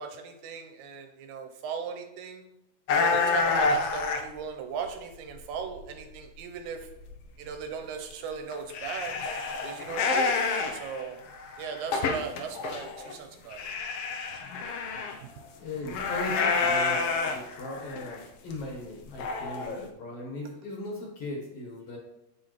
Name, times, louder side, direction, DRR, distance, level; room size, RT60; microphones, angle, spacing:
voice 1, 0.0-2.4 3.0-6.8 7.4-9.1 9.6-11.2 11.6-13.7 15.2-15.3, right 6 dB, 80° right, 5 dB, 2.1 m, -38 dB
sound 1, 2.9-4.3 4.9-5.8 6.1-6.2 6.7-6.8 7.0-7.2 7.4-7.5 8.1-8.2 8.5-13.1 13.5-15.2 15.8-18.2 18.5-18.6 19.2-19.8, left 4 dB, 75° left, 1.4 m, -28 dB
voice 2, 15.6-22.0, left 2 dB, 55° left, -2 dB, 2.1 m, -38 dB
7.7 x 6.3 x 3.1 m, 0.87 s
omnidirectional pair, 3.5 m